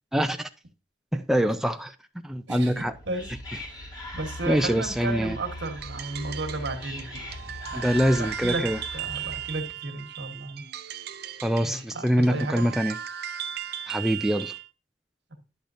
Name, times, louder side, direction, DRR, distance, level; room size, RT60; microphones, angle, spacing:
voice 1, 0.1-0.5 1.1-1.9 2.2-2.9 4.5-5.4 7.7-8.8 11.4-13.0 13.9-14.5, equal, ahead, 0.3 m, -24 dB
voice 2, 2.5-3.3 3.5-7.4 7.7-8.7 8.9-10.6 11.6-12.7, right 2 dB, 80° right, 1.3 m, -34 dB
Whispering, 2.7-9.7, left 1 dB, 25° left, 1.7 m, -40 dB
sound 1, 5.7-14.7, right 10 dB, 60° right, 0.6 m, -37 dB
10.0 x 6.6 x 2.6 m
head